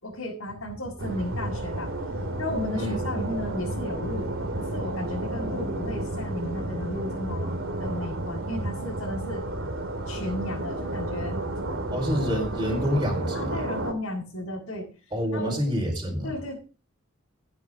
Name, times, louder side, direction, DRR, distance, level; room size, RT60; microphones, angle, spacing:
voice 1, 0.0-1.9 2.4-9.4 10.1-11.4 12.1-12.4 13.3-14.9 15.3-15.6 16.2-16.6, left 1 dB, 75° left, 6.6 m, -34 dB
sound 1, 1.0-13.9, right 1 dB, 65° right, 2.6 m, -31 dB
voice 2, 11.9-13.6 15.1-16.3, equal, 20° right, 4.6 m, -27 dB
16.5 x 9.6 x 3.7 m
head